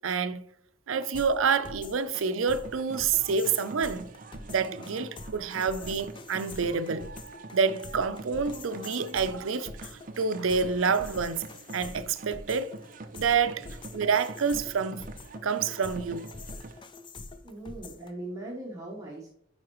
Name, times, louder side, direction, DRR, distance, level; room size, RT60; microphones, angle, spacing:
voice 1, 0.0-0.4 0.9-4.1 4.5-7.1 7.5-11.5 11.7-12.7 13.1-15.1 15.4-16.3, right 5 dB, 80° right, 0.5 m, -28 dB
sound 1, 0.9-18.1, left 3 dB, 25° left, 0.4 m, -45 dB
sound 2, 2.6-16.8, right 2 dB, 40° right, 0.6 m, -45 dB
voice 2, 17.4-19.3, right 1 dB, 15° right, 1.0 m, -39 dB
9.5 x 4.4 x 3.1 m
head